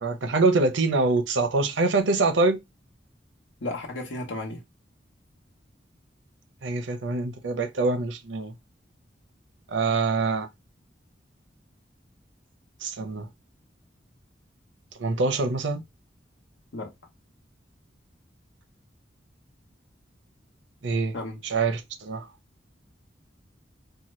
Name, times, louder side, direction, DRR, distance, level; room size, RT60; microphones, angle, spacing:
voice 1, 0.0-2.6 6.6-8.5 9.7-10.5 12.8-13.3 15.0-15.8 20.8-21.1 21.4-22.3, right 3 dB, 80° right, 0.6 m, -24 dB
voice 2, 3.6-4.6 16.7-16.9 21.1-21.4, left 2 dB, 80° left, 0.9 m, -33 dB
2.8 x 2.2 x 3.1 m
head